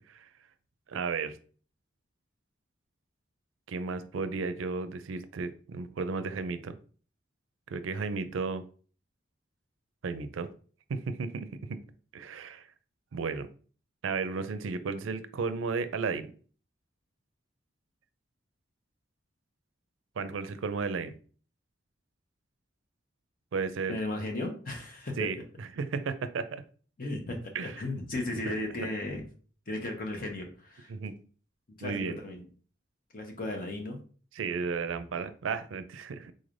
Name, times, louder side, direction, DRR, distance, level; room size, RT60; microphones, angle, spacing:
voice 1, 0.9-1.4 3.7-6.8 7.7-8.6 10.0-10.5 10.9-11.8 12.1-12.7 13.1-13.5 14.0-16.3 20.2-21.1 23.5-24.0 25.2-26.6 27.5-27.8 28.4-28.5 30.9-31.1 31.8-32.2 34.3-36.3, right 4 dB, 85° right, 11 dB, 0.4 m, -34 dB
voice 2, 23.9-25.3 27.0-29.2 29.7-30.9 31.8-32.4 33.1-34.0, left 2 dB, 45° left, 3 dB, 0.8 m, -35 dB
3.9 x 3.2 x 2.5 m, 0.40 s
head